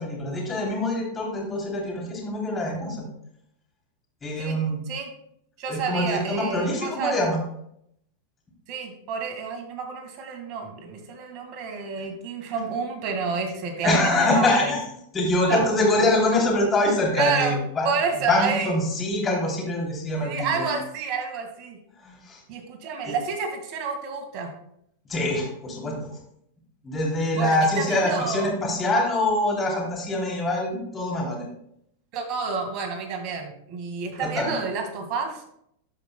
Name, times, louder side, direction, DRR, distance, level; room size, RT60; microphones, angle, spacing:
voice 1, 0.0-3.1 4.2-4.8 5.7-7.4 13.8-17.9 18.3-20.8 22.0-22.4 23.0-23.1 25.1-25.9 26.8-31.4 34.2-34.5, left 1 dB, 20° left, -2 dB, 3.1 m, -24 dB
voice 2, 5.6-7.1 8.7-14.7 15.5-15.6 16.0-16.1 17.2-17.6 17.8-18.7 20.2-21.8 22.5-24.5 27.3-28.7 32.1-35.4, right 5 dB, 50° right, 4 dB, 1.8 m, -29 dB
12.0 x 5.3 x 2.2 m, 0.72 s
hypercardioid pair, 110°, 0 cm